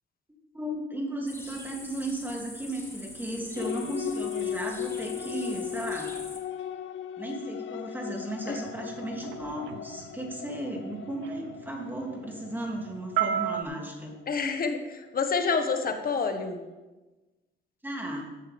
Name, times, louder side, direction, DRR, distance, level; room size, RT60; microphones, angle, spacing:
voice 1, 0.5-6.2 7.2-14.2 17.8-18.3, right 1 dB, 10° right, -1 dB, 2.8 m, -35 dB
sound 1, 1.3-6.4, left 1 dB, 10° left, 2.1 m, -44 dB
sound 2, 3.6-15.5, left 9 dB, 75° left, 0.6 m, -38 dB
sound 3, 8.6-13.6, right 10 dB, 80° right, 0.7 m, -34 dB
voice 2, 14.3-16.6, left 5 dB, 45° left, 6 dB, 1.5 m, -28 dB
15.0 x 8.7 x 3.5 m, 1.1 s
cardioid pair, 90°, 20 cm